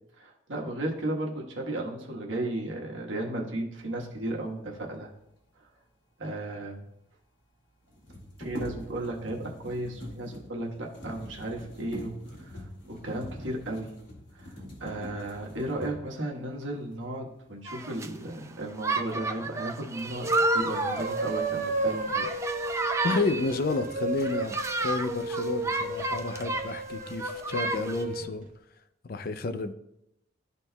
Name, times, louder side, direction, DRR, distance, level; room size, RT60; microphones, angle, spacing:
voice 1, 0.2-5.1 6.2-6.8 8.4-12.6 12.9-14.0 14.3-14.5 14.8-22.3, right 1 dB, 85° right, 0 dB, 1.3 m, -34 dB
sound 1, 6.4-6.5 6.7-6.8 7.9-16.2 16.9-17.0 17.5-18.1 18.5-19.0, equal, 85° left, 2.2 m, -43 dB
sound 2, 17.7-18.1 18.8-23.7 24.2-26.8 27.1-28.0, right 3 dB, 15° right, 0.4 m, -31 dB
sound 3, 20.2-28.3, right 1 dB, 45° right, 0.7 m, -33 dB
voice 2, 23.0-28.4 29.0-29.7, left 3 dB, 50° left, 11 dB, 0.4 m, -31 dB
12.5 x 4.2 x 2.3 m, 0.80 s
head